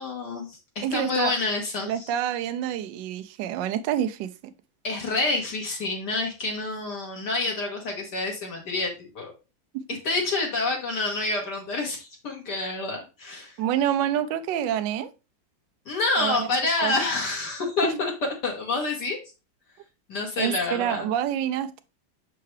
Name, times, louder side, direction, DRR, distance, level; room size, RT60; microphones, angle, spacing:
voice 1, 0.0-2.1 4.8-9.3 9.9-13.6 15.8-19.2 20.1-21.1, left 3 dB, 60° left, 1.8 m, -28 dB
voice 2, 0.8-1.3 1.9-4.3 9.7-9.8 13.6-15.1 16.2-16.5 16.8-16.9 17.8-18.0 20.4-21.8, right 10 dB, 75° right, 1.2 m, -27 dB
6.8 x 4.6 x 3.2 m
omnidirectional pair, 2.1 m